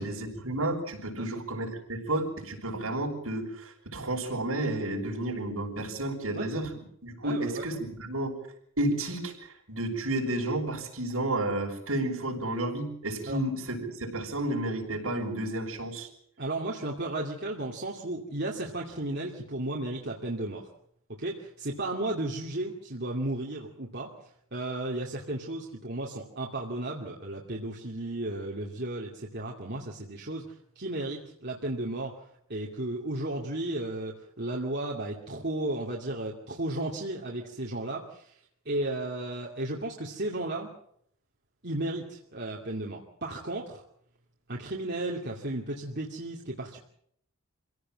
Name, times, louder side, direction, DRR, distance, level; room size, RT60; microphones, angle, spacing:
voice 1, 0.0-6.7 7.0-8.4 8.8-16.1, right 1 dB, 75° right, 0 dB, 6.4 m, -31 dB
voice 2, 7.2-7.6 13.3-13.4 16.4-20.7 21.1-24.1 24.5-32.2 32.5-38.4 38.7-40.7 41.6-43.8 44.5-46.8, right 1 dB, 50° right, -1 dB, 2.5 m, -34 dB
26.0 x 17.0 x 7.6 m, 0.69 s
head